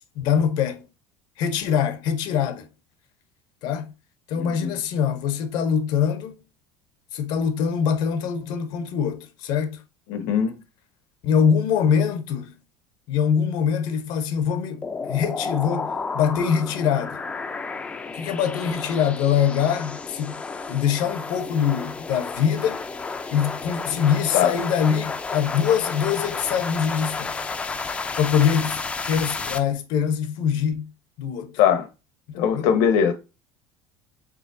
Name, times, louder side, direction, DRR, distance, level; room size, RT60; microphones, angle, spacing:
voice 1, 0.2-0.8 1.4-2.7 3.6-3.9 4.3-6.4 7.1-9.8 11.2-12.6 13.1-17.2 18.1-20.4 20.7-22.9 23.3-27.5 28.2-30.9 31.2-31.6 32.5-32.7, left 7 dB, 55° left, 0.7 m, -23 dB
voice 2, 4.4-4.7 10.1-10.5 24.3-24.5 31.6-31.9 32.3-33.1, left 8 dB, 75° left, 1.0 m, -20 dB
sound 1, 14.8-29.6, left 4 dB, 15° left, 0.4 m, -32 dB
4.9 x 3.5 x 2.6 m
cardioid pair, 160°, 9 cm